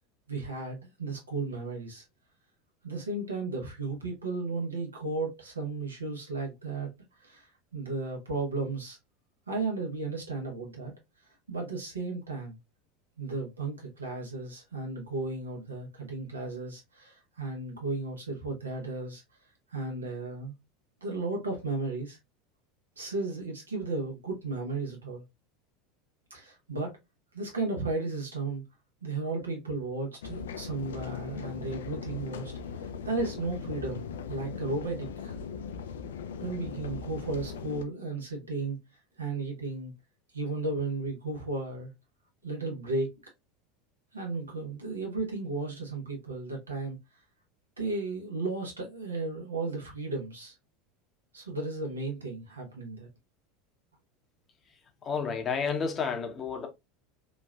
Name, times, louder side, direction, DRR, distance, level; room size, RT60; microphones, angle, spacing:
voice 1, 0.3-2.0 2.8-6.9 7.2-9.0 9.5-10.9 11.5-12.6 13.2-19.2 19.7-20.5 21.0-22.2 23.0-25.2 26.3-26.9 27.3-28.6 29.0-32.5 33.0-35.4 36.4-38.8 39.2-39.9 40.3-41.9 42.4-43.1 44.1-47.0 47.8-50.5 51.3-53.1, right 3 dB, 90° right, 1.0 m, -34 dB
sound 1, 30.2-37.8, left 6 dB, 75° left, 0.3 m, -39 dB
voice 2, 55.0-56.7, left 5 dB, 30° left, 0.7 m, -31 dB
3.0 x 2.5 x 2.2 m
hypercardioid pair, 80°, 0 cm